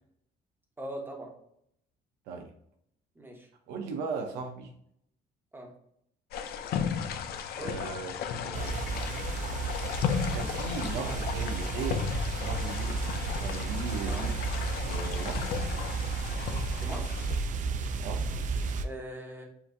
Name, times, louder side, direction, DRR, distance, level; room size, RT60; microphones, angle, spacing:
voice 1, 0.8-1.3 3.1-3.5 5.5-5.7 7.6-7.9 14.0-14.3 16.8-17.3 18.8-19.4, right 1 dB, 15° right, 1 dB, 1.2 m, -41 dB
voice 2, 3.7-4.7 7.6-8.8 10.3-13.1 13.4-14.4 14.8-15.6 18.0-18.2, right 4 dB, 90° right, 4 dB, 0.8 m, -37 dB
sound 1, 6.3-17.4, left 7 dB, 65° left, 0.5 m, -35 dB
sound 2, 8.5-18.8, right 4 dB, 50° right, 0.5 m, -33 dB
7.0 x 2.6 x 2.7 m, 0.72 s
cardioid pair, 110°, 17 cm